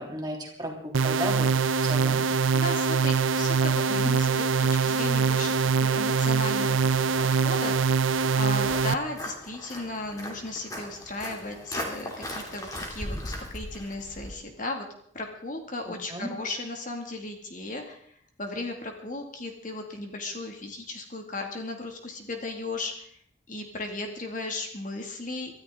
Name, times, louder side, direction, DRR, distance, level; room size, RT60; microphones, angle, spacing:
voice 1, 0.0-1.5 1.8-2.2 15.9-16.3, equal, 20° right, 0 dB, 3.0 m, -34 dB
sound 1, 0.9-8.9, right 5 dB, 85° right, 0.7 m, -24 dB
voice 2, 2.5-7.0 7.3-14.9 15.1-23.2 23.5-25.6, left 2 dB, 40° left, 3 dB, 2.2 m, -36 dB
Walk footsteps, 5.7-14.3, left 1 dB, 20° left, 2.8 m, -39 dB
24.5 x 13.0 x 3.8 m, 0.65 s
head